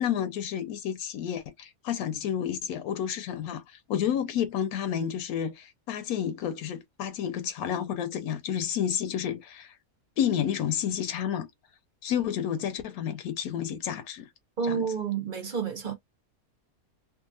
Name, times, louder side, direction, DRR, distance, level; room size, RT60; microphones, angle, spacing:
voice 1, 0.0-9.7 10.2-11.5 12.0-14.3 14.7-14.8, left 9 dB, 85° left, 1.1 m, -30 dB
voice 2, 14.6-16.0, right 6 dB, 50° right, 0.6 m, -30 dB
2.7 x 2.5 x 2.5 m
omnidirectional pair, 1.5 m